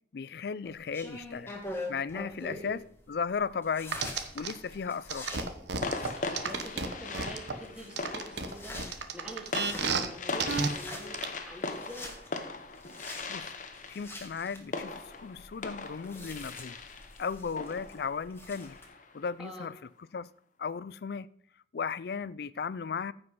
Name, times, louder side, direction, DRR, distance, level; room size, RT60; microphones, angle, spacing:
voice 1, 0.1-1.5 1.9-2.8 3.1-4.0 4.3-5.3 13.3-13.5 13.9-16.8 17.2-18.8 19.1-19.7 20.1-20.3 20.6-21.3 21.7-23.1, left 5 dB, 60° left, 0.4 m, -35 dB
sound 1, 0.6-18.9, left 1 dB, 15° left, 1.6 m, -46 dB
voice 2, 2.4-2.7 6.2-11.2 11.4-12.2 19.4-19.7, equal, 5° right, 2.4 m, -46 dB
sound 2, 3.9-4.5 5.1-7.5 8.0-10.1 10.4-10.7 11.1-11.2, right 5 dB, 70° right, 1.1 m, -31 dB
sound 3, 4.3-4.9 5.8-19.2, left 3 dB, 45° left, 0.9 m, -40 dB
15.0 x 5.4 x 5.5 m
head